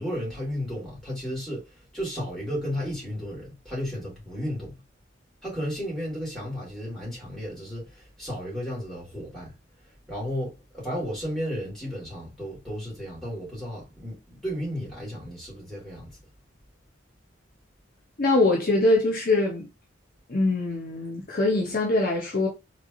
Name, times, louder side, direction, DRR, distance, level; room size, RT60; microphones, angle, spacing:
voice 1, 0.0-4.8 5.4-9.5 9.8-16.2, equal, ahead, 2.4 m, -33 dB
voice 2, 18.2-19.7 20.3-22.5, left 2 dB, 45° left, 0.7 m, -23 dB
3.7 x 3.2 x 2.4 m
head